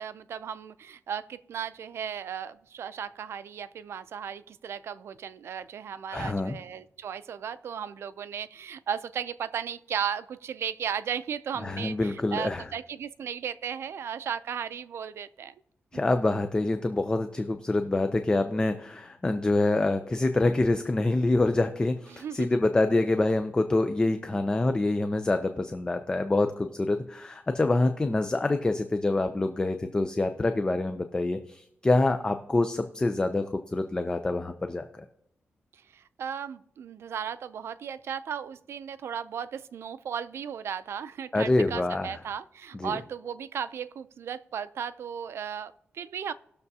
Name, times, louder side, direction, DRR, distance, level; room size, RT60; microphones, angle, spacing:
voice 1, 0.0-15.5 15.9-16.0 22.1-22.5 35.7-46.3, right 8 dB, 75° right, 14 dB, 0.4 m, -36 dB
voice 2, 6.1-6.6 11.6-12.6 15.9-34.9 41.3-42.2 42.7-43.0, left 2 dB, 20° left, 7 dB, 0.5 m, -26 dB
19.0 x 6.7 x 2.8 m, 0.77 s
wide cardioid pair, 155°, 4 cm